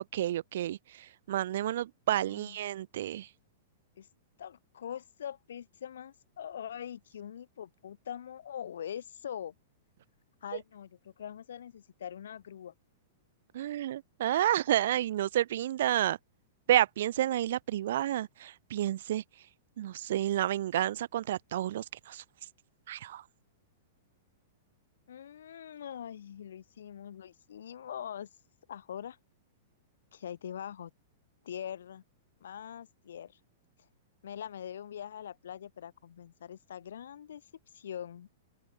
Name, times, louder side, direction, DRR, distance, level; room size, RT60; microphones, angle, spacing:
voice 1, 0.0-3.3 13.5-16.2 16.7-19.2 19.8-22.2 22.9-23.2, right 12 dB, 70° right, 1.1 m, -30 dB
voice 2, 4.4-9.5 10.4-12.7 25.1-28.3 28.7-29.2 30.1-30.9 31.4-32.0 32.4-33.4 34.2-37.4 37.7-38.3, left 9 dB, 85° left, 4.7 m, -43 dB
open air
hypercardioid pair, 140°, 0 cm